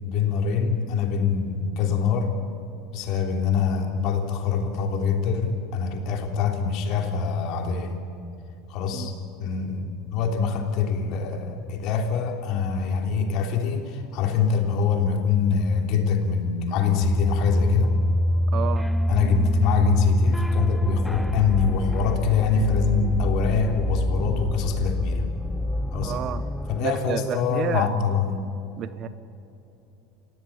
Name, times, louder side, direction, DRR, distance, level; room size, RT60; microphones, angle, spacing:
voice 1, 0.0-2.3 2.9-8.0 8.7-9.1 9.4-17.9 19.1-25.2 25.9-26.1 26.7-28.4, left 6 dB, 55° left, 3 dB, 3.2 m, -24 dB
sound 1, 17.0-26.8, left 1 dB, ahead, 0.7 m, -25 dB
voice 2, 18.5-18.9 26.0-26.4 26.8-27.9 28.8-29.1, right 9 dB, 45° right, 13 dB, 1.1 m, -30 dB
29.0 x 16.0 x 8.7 m, 2.9 s
hypercardioid pair, 75°, 0 cm